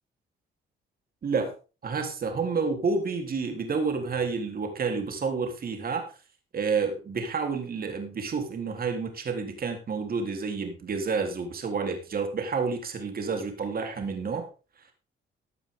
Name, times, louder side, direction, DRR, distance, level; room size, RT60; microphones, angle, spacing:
voice 1, 1.2-1.5 1.8-6.1 6.5-14.5, right 5 dB, 50° right, 5 dB, 3.7 m, -29 dB
15.5 x 9.3 x 3.8 m, 0.33 s
cardioid pair, 90°, 20 cm